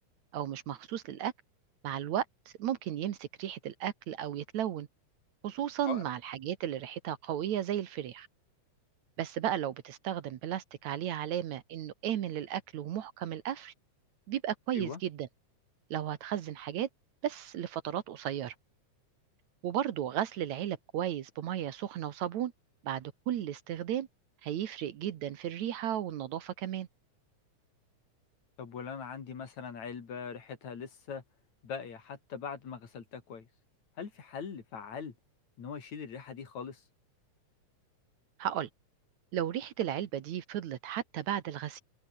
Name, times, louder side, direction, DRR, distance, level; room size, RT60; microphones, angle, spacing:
voice 1, 0.3-1.3 1.8-4.9 5.4-8.3 9.2-13.7 14.3-15.3 15.9-16.9 17.2-18.5 19.6-22.5 22.8-24.1 24.4-26.9 38.4-38.7 39.3-41.8, right 11 dB, 65° right, 2.4 m, -34 dB
voice 2, 28.6-31.2 31.6-33.5 34.0-35.1 35.6-36.8, left 6 dB, 60° left, 4.3 m, -41 dB
open air
omnidirectional pair, 3.7 m